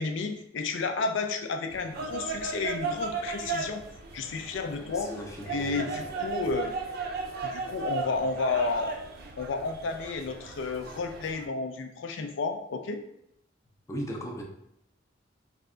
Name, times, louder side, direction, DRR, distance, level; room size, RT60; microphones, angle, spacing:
voice 1, 0.0-3.8 4.1-5.1 5.5-6.7 7.4-9.0 9.4-13.0, left 4 dB, 70° left, 6 dB, 0.4 m, -31 dB
sound 1, 1.7-11.4, right 4 dB, 55° right, 0.4 m, -36 dB
voice 2, 4.8-6.4 13.9-14.4, equal, 15° left, 0 dB, 0.5 m, -38 dB
3.3 x 2.2 x 3.6 m, 0.78 s
head